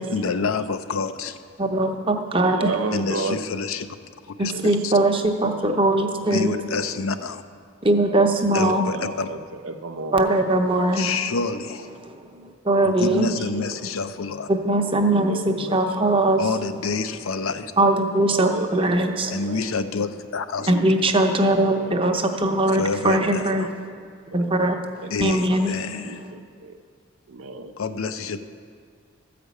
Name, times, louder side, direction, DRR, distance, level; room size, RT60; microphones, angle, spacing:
voice 1, 0.1-1.3 2.9-3.9 4.4-4.9 6.3-7.4 8.5-9.3 11.0-11.8 12.8-14.5 16.4-17.7 19.3-20.7 22.8-23.7 25.1-26.1 27.8-28.4, left 4 dB, 90° left, 10 dB, 0.6 m, -27 dB
voice 2, 1.6-2.7 4.4-6.5 7.8-8.9 10.1-11.1 12.0-13.3 14.5-16.4 17.8-19.3 20.7-24.0 24.3-26.0, right 1 dB, 25° right, 4 dB, 0.7 m, -21 dB
voice 3, 2.4-3.4 4.5-4.8 8.4-9.4 9.6-10.3 13.1-13.7 15.1-16.1 18.3-19.6 20.6-20.9 21.7-22.4 22.7-23.0 24.3-24.7 25.0-26.8 27.3-27.7, right 3 dB, 80° right, 8 dB, 0.7 m, -33 dB
13.5 x 5.1 x 8.2 m, 2.1 s
head